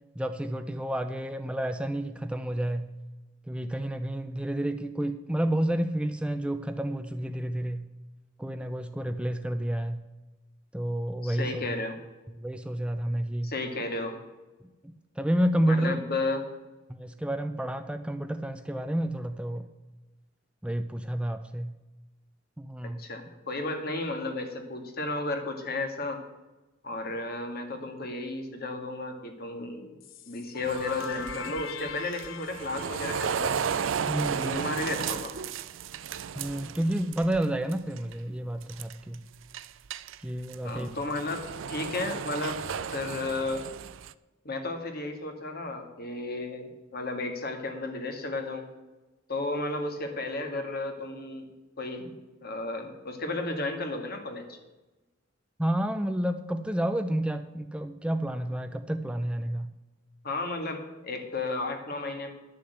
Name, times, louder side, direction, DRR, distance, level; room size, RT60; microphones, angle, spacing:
voice 1, 0.2-2.9 3.5-7.9 8.4-10.0 10.7-11.6 12.4-13.5 15.2-16.0 16.9-19.7 20.6-21.7 22.6-23.0 34.1-34.5 36.4-39.2 40.2-40.9 55.6-59.7, right 1 dB, 5° right, 8 dB, 0.4 m, -30 dB
voice 2, 11.2-12.0 13.4-14.2 15.7-16.5 22.8-26.2 26.8-30.0 30.3-33.6 34.3-35.3 40.6-42.6 42.9-43.6 44.5-48.6 49.3-51.5 51.8-52.1 52.4-54.6 60.2-62.3, left 2 dB, 50° left, 5 dB, 1.8 m, -33 dB
sound 1, 30.0-34.8, left 8 dB, 70° left, 0.7 m, -42 dB
sound 2, 30.6-37.4 37.7-38.1 38.6-39.1 39.5-44.1, right 7 dB, 75° right, 0.4 m, -34 dB
11.0 x 6.8 x 8.0 m, 1.1 s
head